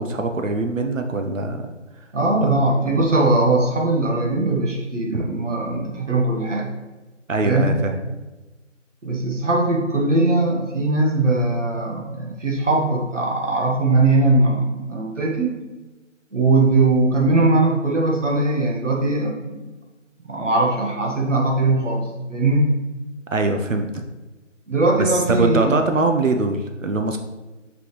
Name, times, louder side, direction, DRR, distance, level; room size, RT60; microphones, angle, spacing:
voice 1, 0.0-1.7 2.9-3.0 5.1-5.2 7.3-8.0 23.3-24.0 25.0-27.2, right 3 dB, 90° right, 5 dB, 0.9 m, -22 dB
voice 2, 2.1-6.7 7.4-7.7 9.0-15.5 16.3-19.7 20.2-22.7 24.7-25.8, right 2 dB, 70° right, -1 dB, 1.8 m, -20 dB
6.0 x 5.9 x 3.4 m, 1.2 s
figure-of-eight pair, 175°, 38 cm